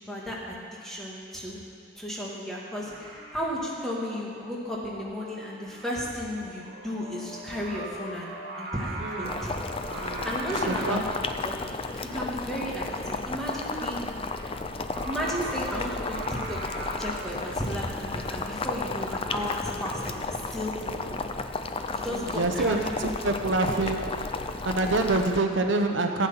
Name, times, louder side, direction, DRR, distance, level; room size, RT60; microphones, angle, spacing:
voice 1, 0.1-1.6 2.0-8.3 8.6-11.0 11.4-11.6 12.1-14.0 15.0-20.7 21.9-22.9 23.7-23.8, equal, ahead, -5 dB, 2.0 m, -34 dB
Singing, 2.8-21.2, right 2 dB, 45° right, 3.2 m, -42 dB
voice 2, 9.0-9.5 9.9-10.3 10.5-11.0 12.6-12.7 20.8-21.1 22.1-24.0 24.6-26.3, right 2 dB, 70° right, 4 dB, 0.9 m, -27 dB
Boiling, 9.2-25.4, left 3 dB, 30° left, 0.5 m, -33 dB
15.0 x 9.4 x 5.7 m, 2.2 s
head